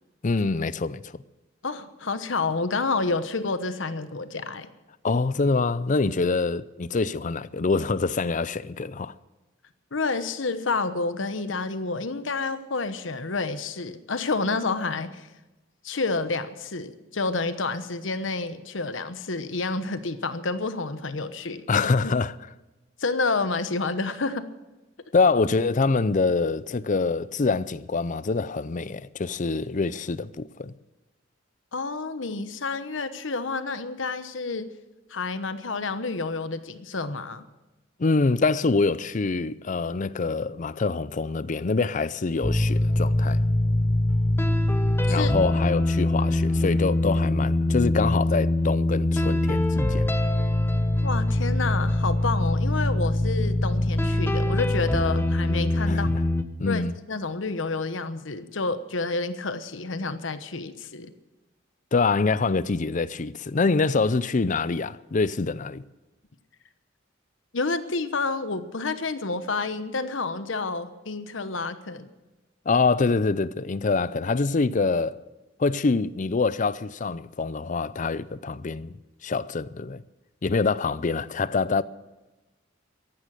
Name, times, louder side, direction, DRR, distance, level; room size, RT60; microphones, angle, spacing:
voice 1, 0.2-1.2 5.0-9.1 21.7-22.3 25.1-30.7 38.0-43.4 45.1-50.1 55.9-56.2 56.6-56.9 61.9-65.8 72.7-75.2 75.6-78.9 79.2-80.0 80.4-81.8, left 4 dB, 40° left, 0.5 m, -25 dB
voice 2, 1.6-4.7 9.9-15.3 15.8-21.7 22.0-22.1 23.0-24.5 31.7-34.7 35.1-37.4 45.1-45.3 51.0-56.1 56.6-61.1 67.5-72.1, left 3 dB, 75° left, 1.1 m, -29 dB
sound 1, 42.4-56.4, left 1 dB, 10° left, 0.9 m, -23 dB
15.0 x 11.5 x 7.6 m
head